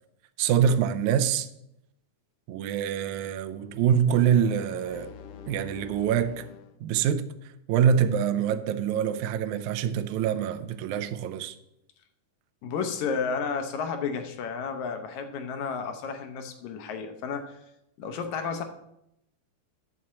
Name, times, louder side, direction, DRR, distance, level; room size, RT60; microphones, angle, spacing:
voice 1, 0.4-1.5 2.5-5.1 5.5-6.5 6.8-11.6, right 8 dB, 80° right, 1.9 m, -25 dB
sound 1, 4.0-6.8, left 7 dB, 90° left, 1.4 m, -45 dB
voice 2, 12.6-17.6 18.0-18.6, left 5 dB, 70° left, 2.0 m, -32 dB
10.5 x 4.2 x 7.4 m
omnidirectional pair, 3.7 m